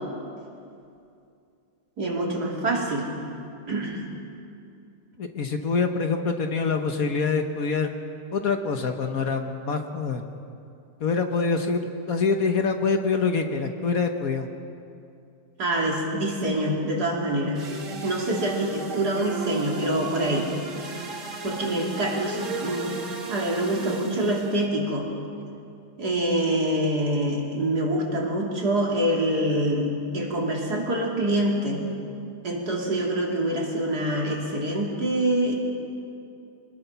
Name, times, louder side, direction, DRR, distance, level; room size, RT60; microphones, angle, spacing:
voice 1, 2.0-3.1 3.7-4.1 15.6-17.7 18.0-20.5 21.4-23.0 23.3-25.1 26.0-31.9 32.4-35.5, right 1 dB, 65° right, -2 dB, 3.5 m, -25 dB
voice 2, 5.2-7.9 8.3-10.2 11.0-14.5, left 4 dB, 55° left, 5 dB, 1.5 m, -25 dB
sound 1, 17.5-24.7, right 3 dB, 45° right, 1.8 m, -35 dB
25.5 x 20.0 x 5.7 m, 2.6 s
omnidirectional pair, 1.9 m